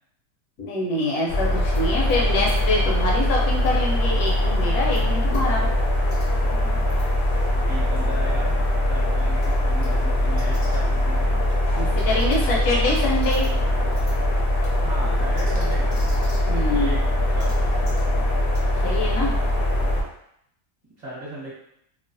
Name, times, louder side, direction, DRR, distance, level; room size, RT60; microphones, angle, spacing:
voice 1, 0.6-5.7 11.7-13.5 16.4-16.9 18.8-19.4, left 2 dB, 80° left, -3 dB, 1.2 m, -25 dB
sound 1, 1.3-20.0, left 1 dB, 60° left, 0.8 m, -22 dB
voice 2, 6.4-7.0 7.7-8.6 8.9-11.4 14.8-17.0 17.3-17.9 21.0-21.5, right 1 dB, 30° right, -8 dB, 0.9 m, -37 dB
2.9 x 2.0 x 2.5 m, 0.72 s
omnidirectional pair, 1.6 m